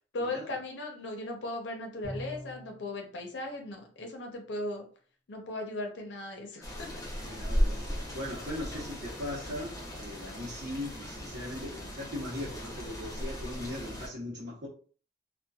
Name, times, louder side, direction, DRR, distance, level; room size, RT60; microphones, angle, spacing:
voice 1, 0.0-4.8 5.3-7.0, left 2 dB, 80° left, 0.6 m, -37 dB
Bowed string instrument, 2.0-2.9, equal, 15° right, 0.8 m, -41 dB
sound 1, 6.6-14.1, equal, 20° left, 0.6 m, -36 dB
voice 2, 7.2-14.7, left 1 dB, 65° right, 0.8 m, -39 dB
2.7 x 2.1 x 2.3 m
head